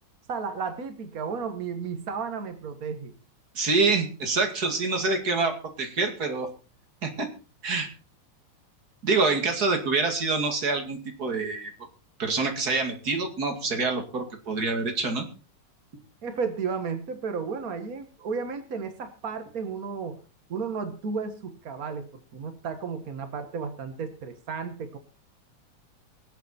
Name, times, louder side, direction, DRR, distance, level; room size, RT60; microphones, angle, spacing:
voice 1, 0.3-3.1 16.2-20.2 20.5-25.0, right 5 dB, 65° right, 8 dB, 0.8 m, -33 dB
voice 2, 3.5-6.5 7.0-7.3 7.6-7.9 9.0-11.7 12.2-15.3, right 3 dB, 30° right, 4 dB, 2.5 m, -26 dB
24.0 x 8.3 x 4.3 m, 0.35 s
omnidirectional pair, 3.8 m